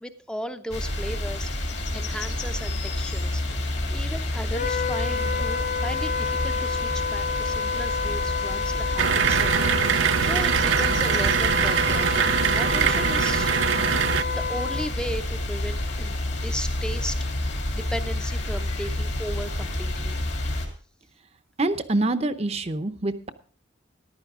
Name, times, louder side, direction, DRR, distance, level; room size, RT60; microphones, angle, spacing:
voice 1, 0.0-13.5 14.0-20.2, equal, 5° left, 9 dB, 0.6 m, -36 dB
sound 1, 0.7-20.7, left 1 dB, 60° left, 2.6 m, -29 dB
Wind instrument woodwind instrument, 4.5-14.9, left 5 dB, 40° left, 0.7 m, -29 dB
sound 2, 9.0-14.2, right 8 dB, 80° right, 0.4 m, -23 dB
voice 2, 21.6-23.3, right 2 dB, 35° right, 11 dB, 0.7 m, -25 dB
14.0 x 11.5 x 3.6 m, 0.41 s
head